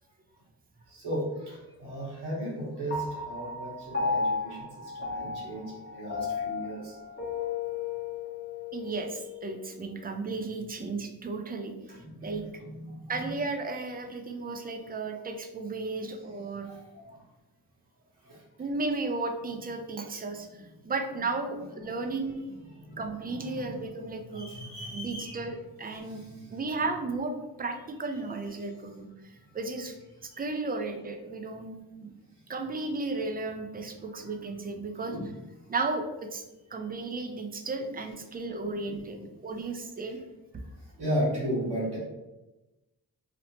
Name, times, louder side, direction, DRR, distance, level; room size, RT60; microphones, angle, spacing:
voice 1, 0.9-4.7 5.1-6.9 11.9-13.3 16.6-17.1 21.8-21.9 22.5-23.7 24.3-25.5 26.0-26.2 28.2-28.6 34.2-34.3 35.1-35.3 38.8-39.2 41.0-42.0, equal, 75° right, -5 dB, 1.2 m, -36 dB
Piano, 2.9-9.6, left 4 dB, 25° left, 0.8 m, -34 dB
voice 2, 8.7-11.7 12.2-12.4 13.1-16.7 18.6-20.5 20.8-22.4 23.0-24.5 24.9-26.2 26.5-29.1 29.5-30.0 30.2-32.1 32.5-35.2 35.7-36.4 36.7-40.2, right 3 dB, 25° right, 5 dB, 0.4 m, -34 dB
2.8 x 2.0 x 2.9 m, 1.0 s
cardioid pair, 50°, 41 cm